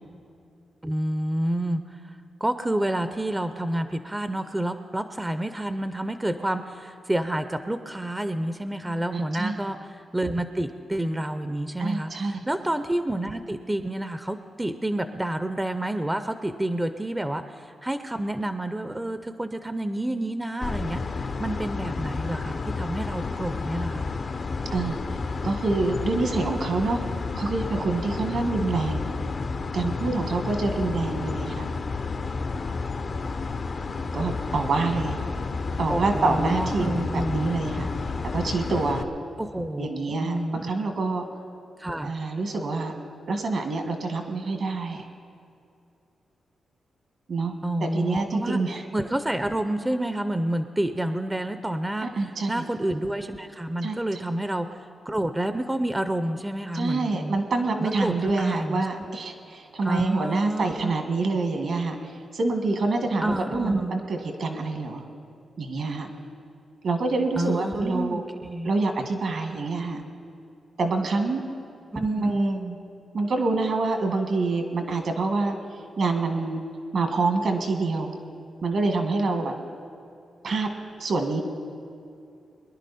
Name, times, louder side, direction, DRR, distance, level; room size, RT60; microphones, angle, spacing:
voice 1, 0.8-24.1 35.9-37.5 39.4-40.7 41.8-42.1 47.6-48.6 48.9-54.8 55.1-57.4 57.8-59.1 59.8-61.0 63.2-64.0 67.4-68.7 71.9-72.8, right 1 dB, 15° right, 9 dB, 0.6 m, -29 dB
voice 2, 9.1-9.5 11.8-12.3 24.7-25.0 25.4-27.0 27.4-29.0 29.7-31.7 34.1-35.2 35.8-37.9 38.3-39.0 39.8-41.3 42.0-42.9 43.3-45.1 47.3-47.5 47.8-48.9 52.0-52.6 53.8-54.0 56.7-65.0 65.6-66.1 66.8-68.2 68.6-70.0 70.8-71.4 71.9-72.6 73.1-75.6 76.0-76.6 76.9-78.1 78.6-79.5 80.4-80.7 81.0-81.4, right 3 dB, 70° right, 5 dB, 1.9 m, -26 dB
sound 1, 20.6-39.0, left 4 dB, 50° left, 0.7 m, -31 dB
22.5 x 10.5 x 4.2 m, 2.5 s
cardioid pair, 75°, 0 cm